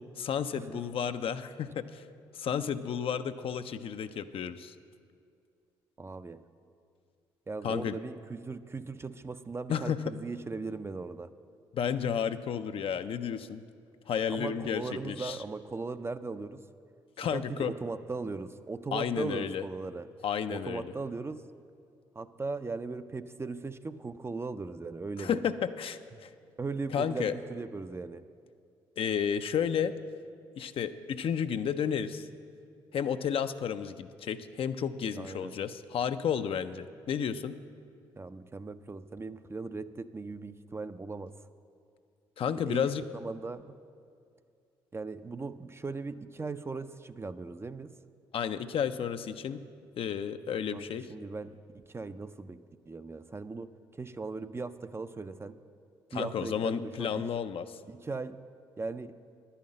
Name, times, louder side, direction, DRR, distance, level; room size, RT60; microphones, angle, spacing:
voice 1, 0.2-2.0 2.3-4.7 7.6-8.0 9.7-10.0 11.7-13.6 14.1-15.4 17.2-17.7 18.9-19.6 20.2-20.9 25.2-26.3 26.9-27.3 29.0-30.0 30.6-32.3 32.9-37.5 42.4-43.1 48.3-49.6 50.0-51.1 56.1-57.8, left 8 dB, 55° left, 10 dB, 0.5 m, -32 dB
voice 2, 6.0-6.4 7.5-11.3 14.3-16.6 17.2-20.1 20.5-21.4 22.2-25.4 26.6-28.3 35.2-35.6 38.2-41.3 42.7-43.8 44.9-47.9 50.7-51.6 51.9-53.7 54.0-55.6 56.1-57.2 57.9-58.4 58.8-59.2, right 3 dB, 25° right, 11 dB, 0.4 m, -38 dB
10.5 x 5.7 x 8.6 m, 2.4 s
hypercardioid pair, 50°, 11 cm